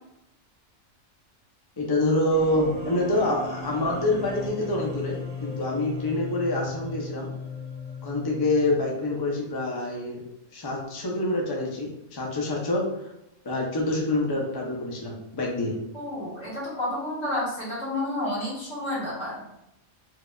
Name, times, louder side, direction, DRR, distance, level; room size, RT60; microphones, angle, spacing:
voice 1, 1.8-7.3 8.0-10.2 10.5-12.8 13.4-15.7, left 1 dB, 35° left, -2 dB, 0.4 m, -26 dB
sound 1, 2.3-9.3, left 4 dB, 35° right, 0.6 m, -37 dB
voice 2, 15.9-19.4, left 1 dB, 60° left, -7 dB, 1.7 m, -30 dB
4.5 x 2.4 x 2.3 m, 0.86 s
omnidirectional pair, 1.3 m